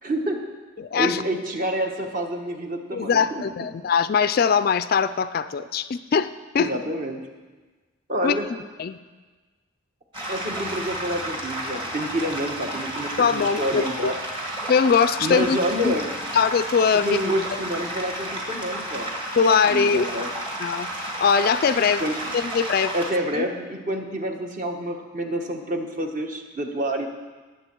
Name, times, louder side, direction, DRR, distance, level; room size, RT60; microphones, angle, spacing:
voice 1, 0.0-0.4 1.0-3.4 6.6-7.2 8.1-8.5 10.3-14.1 15.2-16.1 17.0-19.1 19.7-20.3 22.0-22.1 22.9-27.1, right 1 dB, 40° right, 3 dB, 1.3 m, -28 dB
voice 2, 0.8-1.2 2.9-6.7 8.2-8.4 8.8-9.0 13.2-13.8 14.7-15.6 15.8-15.9 16.3-17.2 19.4-20.1 20.6-20.9 21.2-22.0 22.5-22.9 23.4-23.5, left 6 dB, 45° left, 13 dB, 0.3 m, -21 dB
sound 1, 10.1-23.1, right 1 dB, 25° right, 1.8 m, -32 dB
19.5 x 7.5 x 4.5 m, 1.3 s
head